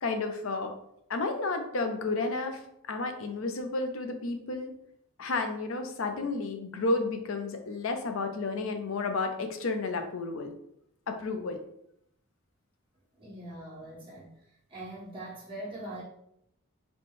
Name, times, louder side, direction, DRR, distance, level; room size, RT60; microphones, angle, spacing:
voice 1, 0.0-0.7 1.1-2.6 2.9-4.7 5.2-10.5 11.1-11.6, left 3 dB, 65° left, 5 dB, 0.5 m, -31 dB
voice 2, 13.2-14.3 14.7-16.0, right 1 dB, 25° right, -9 dB, 1.2 m, -42 dB
4.2 x 2.3 x 3.2 m, 0.77 s
head